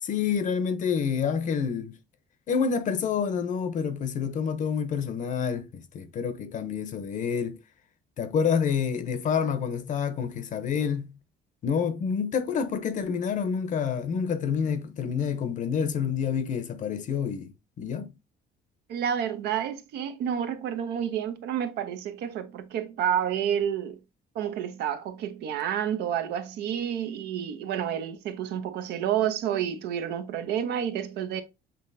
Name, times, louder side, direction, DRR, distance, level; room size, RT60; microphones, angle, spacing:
voice 1, 0.0-2.0 2.5-7.6 8.2-11.2 11.6-18.1, left 6 dB, 50° left, 0.7 m, -28 dB
voice 2, 18.9-24.0 24.3-31.4, right 9 dB, 75° right, 0.7 m, -29 dB
7.0 x 2.7 x 2.6 m
cardioid pair, 110°, 17 cm